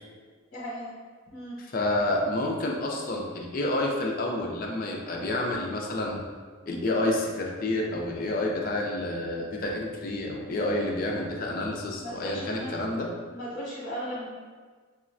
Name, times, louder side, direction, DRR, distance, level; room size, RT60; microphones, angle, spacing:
voice 1, 0.5-0.9 1.3-1.5 12.0-12.7 13.3-14.3, equal, 60° left, -8 dB, 0.9 m, -36 dB
voice 2, 1.7-6.2 6.7-13.1, left 1 dB, 45° left, 0 dB, 0.4 m, -29 dB
4.8 x 2.1 x 2.5 m, 1.5 s
head